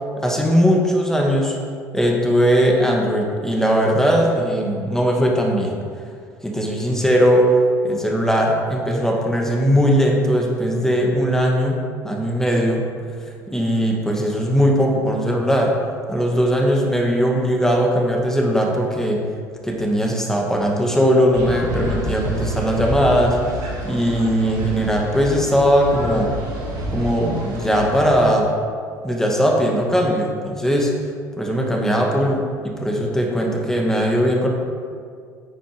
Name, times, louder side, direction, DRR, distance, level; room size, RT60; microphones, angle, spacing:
voice 1, 0.2-1.6 1.9-5.8 6.4-7.5 7.8-12.8 13.5-15.7 16.1-19.2 19.6-23.4 23.8-26.3 26.9-28.5 29.0-30.9 31.4-34.5, equal, 5° left, -1 dB, 1.9 m, -19 dB
sound 1, 21.3-28.3, right 1 dB, 65° right, 2.4 m, -29 dB
10.0 x 8.9 x 3.2 m, 2.1 s
figure-of-eight pair, 60°, 11 cm